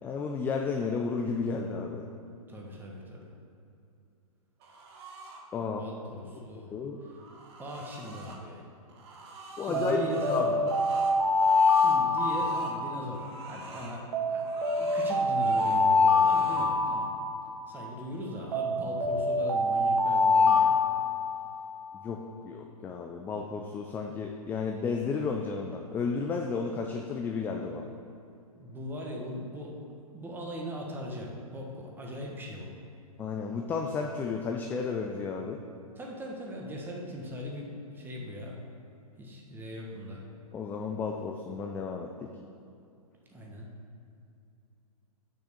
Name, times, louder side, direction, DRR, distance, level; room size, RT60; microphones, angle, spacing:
voice 1, 0.0-2.1 5.5-5.8 6.7-7.0 9.6-10.0 10.3-10.5 22.0-27.9 33.2-35.6 40.5-42.3, left 5 dB, 10° left, 2 dB, 0.3 m, -32 dB
voice 2, 2.5-3.3 5.6-6.7 7.6-8.6 9.4-10.6 11.7-14.5 14.8-17.1 17.7-20.7 28.5-29.7 30.1-32.7 36.0-37.7 37.9-38.6 39.2-40.2 43.3-43.7, equal, 10° right, -1 dB, 1.4 m, -39 dB
sound 1, 4.6-5.4 6.8-8.4 8.9-12.8 13.1-14.0 14.4-15.8 16.1-16.7, right 3 dB, 45° right, 1.4 m, -47 dB
Alarm, 9.7-13.4 14.1-17.8 18.5-21.7, left 3 dB, 70° right, 1.3 m, -25 dB
6.4 x 6.1 x 6.8 m, 2.6 s
hypercardioid pair, 125°, 19 cm